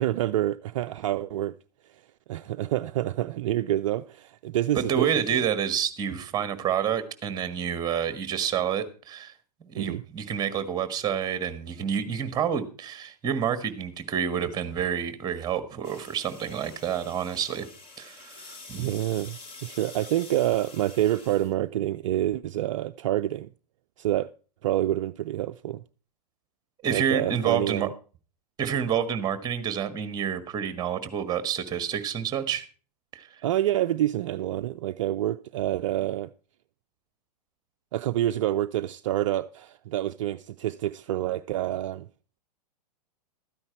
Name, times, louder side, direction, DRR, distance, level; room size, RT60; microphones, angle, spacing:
voice 1, 0.0-1.5 1.9-2.0 2.3-5.5 9.8-10.0 18.7-23.5 24.0-24.3 24.6-25.8 26.9-27.9 33.4-36.3 37.9-42.1, right 13 dB, 50° right, 0.5 m, -27 dB
voice 2, 4.7-9.3 9.6-17.7 18.0-18.9 26.8-27.9 28.6-32.7 33.1-33.3, right 8 dB, 20° right, 1.5 m, -28 dB
sound 1, 15.8-21.5, left 3 dB, 25° left, 2.2 m, -47 dB
13.0 x 9.7 x 4.4 m
figure-of-eight pair, 110°, 21 cm